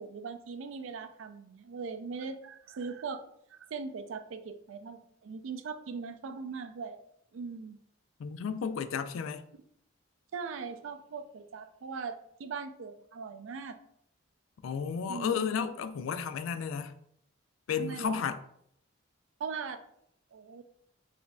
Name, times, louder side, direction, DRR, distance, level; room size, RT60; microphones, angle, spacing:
voice 1, 0.0-3.2 3.5-7.0 7.3-7.8 10.3-13.8 15.1-15.5 17.8-18.2 19.4-19.8 20.3-20.6, right 5 dB, 80° right, 0.4 m, -40 dB
voice 2, 8.2-9.4 14.6-16.9 17.7-18.4, left 6 dB, 85° left, 0.3 m, -33 dB
4.9 x 2.5 x 2.3 m
head